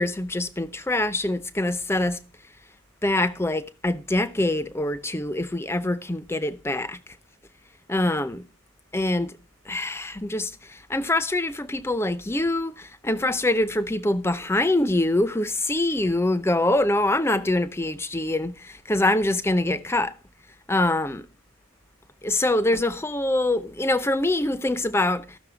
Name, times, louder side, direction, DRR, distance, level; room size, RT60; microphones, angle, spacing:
voice 1, 0.0-2.2 3.0-7.0 7.9-8.4 8.9-9.4 9.7-20.1 20.7-21.3 22.2-25.4, left 1 dB, 15° left, 0.6 m, -24 dB
13.5 x 6.5 x 4.9 m
head